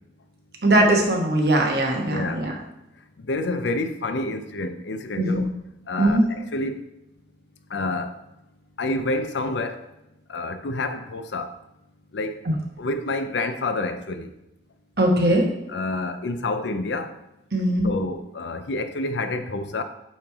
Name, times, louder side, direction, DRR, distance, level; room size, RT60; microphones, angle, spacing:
voice 1, 0.6-2.5 5.2-5.4 6.0-6.3 12.4-12.5 15.0-15.5 17.5-17.9, right 1 dB, 60° right, 1 dB, 1.1 m, -20 dB
voice 2, 2.1-2.4 3.2-5.5 5.9-6.8 7.7-8.3 8.8-9.9 10.3-11.6 12.1-12.4 12.8-14.3 15.7-17.2 17.8-19.8, left 2 dB, 80° left, 9 dB, 0.5 m, -28 dB
8.6 x 3.2 x 3.5 m, 0.91 s
head